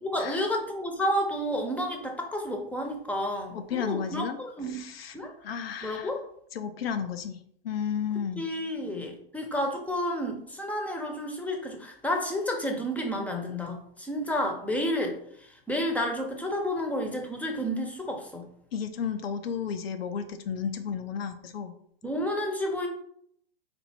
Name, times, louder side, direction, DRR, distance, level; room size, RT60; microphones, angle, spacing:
voice 1, 0.0-4.8 5.1-5.3 5.8-6.2 8.4-18.5 22.0-22.9, equal, 5° left, 2 dB, 0.9 m, -31 dB
voice 2, 3.5-4.4 4.7-6.1 6.5-8.4 18.7-21.7, left 7 dB, 75° left, 7 dB, 0.7 m, -33 dB
4.3 x 2.7 x 4.3 m, 0.68 s
hypercardioid pair, 105°, 30 cm